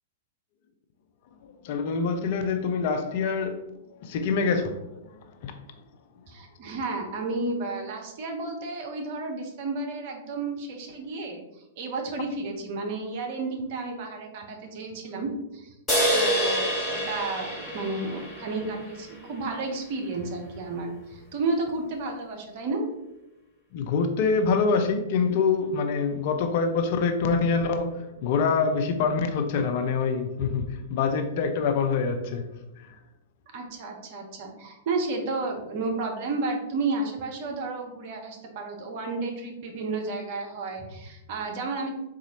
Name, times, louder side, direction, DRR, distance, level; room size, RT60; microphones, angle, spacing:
voice 1, 1.6-3.6 4.0-4.8 5.4-5.6 23.7-32.5 32.8-32.9, left 5 dB, 45° left, 0.4 m, -25 dB
voice 2, 6.3-11.4 11.8-15.7 16.1-22.8 33.5-41.9, right 3 dB, 45° right, 0.6 m, -32 dB
sound 1, 15.9-19.4, equal, 10° left, 1.3 m, -27 dB
4.0 x 2.4 x 2.8 m
figure-of-eight pair, 100°, 0 cm